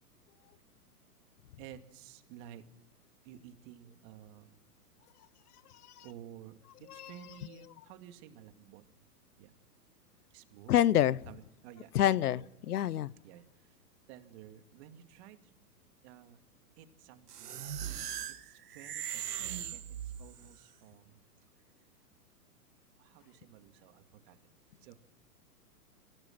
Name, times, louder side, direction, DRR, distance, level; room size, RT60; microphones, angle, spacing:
voice 1, 1.6-2.6 3.2-4.6 6.0-6.6 6.9-8.8 9.4-9.5 10.3-10.7 11.3-12.5 13.2-13.4 14.1-15.4 16.0-16.4 16.8-17.7 18.4-19.8 20.2-21.2 23.0-24.4 24.8-24.9, right 11 dB, 45° right, 2.4 m, -53 dB
voice 2, 10.7-11.2 11.9-12.4 12.7-13.1, left 11 dB, 70° left, 0.9 m, -26 dB
sound 1, 17.3-20.5, right 10 dB, 75° right, 1.9 m, -39 dB
26.0 x 17.5 x 6.0 m
hypercardioid pair, 130°, 47 cm